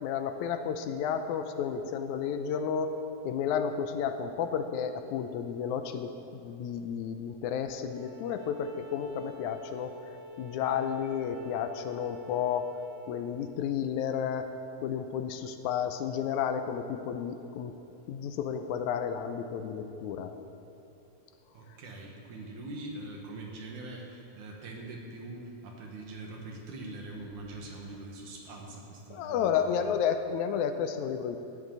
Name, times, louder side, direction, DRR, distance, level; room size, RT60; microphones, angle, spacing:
voice 1, 0.0-9.9 10.4-12.7 13.1-14.5 14.8-17.7 18.1-20.3 29.1-31.4, left 7 dB, 90° left, 8 dB, 2.1 m, -32 dB
Bowed string instrument, 7.9-12.9, left 1 dB, 50° right, 4.9 m, -46 dB
voice 2, 21.5-29.9, right 2 dB, 85° right, 0 dB, 3.2 m, -43 dB
18.0 x 12.5 x 4.0 m, 2.9 s
omnidirectional pair, 3.4 m